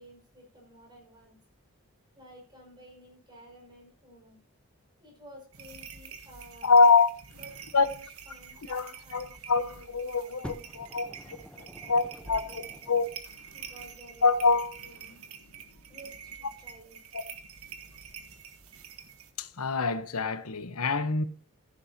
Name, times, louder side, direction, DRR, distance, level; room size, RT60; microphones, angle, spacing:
voice 1, 0.0-1.4 2.2-4.4 5.0-6.7 7.3-10.7 10.9-12.8 13.5-15.2 15.9-17.0, equal, 20° right, 5.7 m, -53 dB
sound 1, 5.5-19.3, right 7 dB, 80° right, 1.6 m, -47 dB
voice 2, 6.6-7.1 7.7-7.9 8.7-11.4 11.9-13.1 14.2-14.7 19.4-21.2, left 4 dB, 90° left, 1.1 m, -25 dB
Fire, 10.4-13.3 14.1-14.2, equal, 5° left, 0.9 m, -47 dB
14.5 x 11.0 x 2.9 m
head